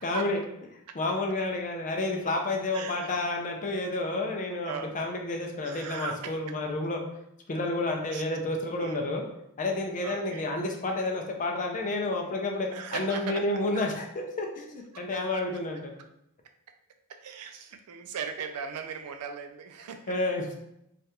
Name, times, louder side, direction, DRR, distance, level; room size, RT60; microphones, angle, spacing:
voice 1, 0.0-0.4 0.9-7.0 7.5-9.2 9.6-15.9 20.1-20.6, left 2 dB, 35° left, 2 dB, 0.5 m, -30 dB
voice 2, 2.7-3.1 4.6-4.9 5.6-6.3 8.1-8.2 8.8-9.0 10.0-10.4 12.7-13.8 14.9-15.4 17.1-20.1, right 6 dB, 90° right, 6 dB, 0.4 m, -38 dB
3.2 x 2.4 x 2.8 m, 0.80 s
head